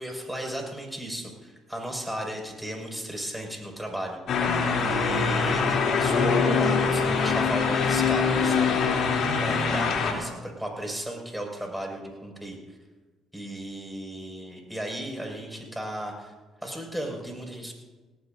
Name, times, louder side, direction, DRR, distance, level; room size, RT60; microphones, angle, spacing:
voice 1, 0.0-4.4 4.8-8.7 9.4-12.8 13.3-16.3 16.6-17.7, right 1 dB, 5° right, 1 dB, 5.7 m, -35 dB
sound 1, 4.3-10.1, left 5 dB, 65° left, 3.1 m, -23 dB
19.5 x 18.5 x 2.7 m, 1.3 s
hypercardioid pair, 60°, 0 cm